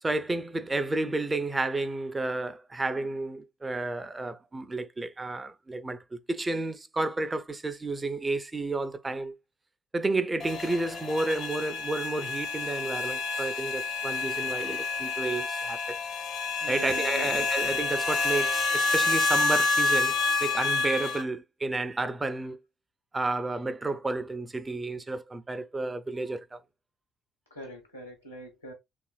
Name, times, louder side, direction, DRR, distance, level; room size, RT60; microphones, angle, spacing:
voice 1, 0.0-9.3 9.9-16.0 16.7-20.1 20.4-22.6 23.1-26.6, right 2 dB, 20° right, 0.3 m, -31 dB
sound 1, 10.4-21.2, left 3 dB, 55° left, 0.6 m, -28 dB
voice 2, 16.6-17.5 27.5-28.7, right 1 dB, 90° left, 0.7 m, -42 dB
2.9 x 2.4 x 2.2 m
figure-of-eight pair, 50°, 0 cm